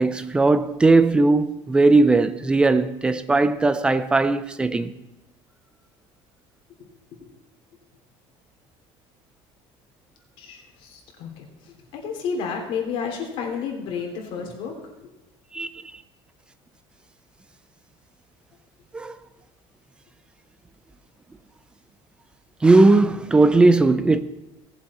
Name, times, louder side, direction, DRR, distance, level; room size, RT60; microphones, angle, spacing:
voice 1, 0.0-4.9 15.5-15.7 18.9-19.2 22.6-24.2, right 3 dB, 10° right, 0.4 m, -18 dB
voice 2, 10.4-11.5 11.9-14.8, left 6 dB, 45° left, 2.9 m, -31 dB
18.0 x 7.2 x 4.2 m
cardioid pair, 175°, 12 cm